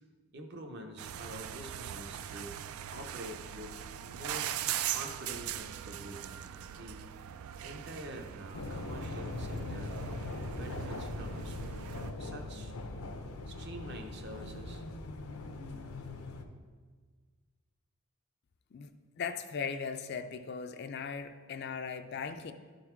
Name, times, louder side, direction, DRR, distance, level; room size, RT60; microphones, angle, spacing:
voice 1, 0.3-2.5 2.9-4.5 4.9-6.4 6.7-7.1 7.6-10.0 10.5-11.6 12.2-12.7 13.5-14.8, right 1 dB, 50° right, 4 dB, 0.8 m, -46 dB
sound 1, 1.0-12.1, right 10 dB, 75° right, 0.3 m, -40 dB
sound 2, 8.5-16.4, left 2 dB, 80° left, 0.7 m, -41 dB
voice 2, 19.2-22.5, left 6 dB, 45° left, 8 dB, 0.4 m, -38 dB
12.0 x 4.0 x 4.5 m, 1.5 s
head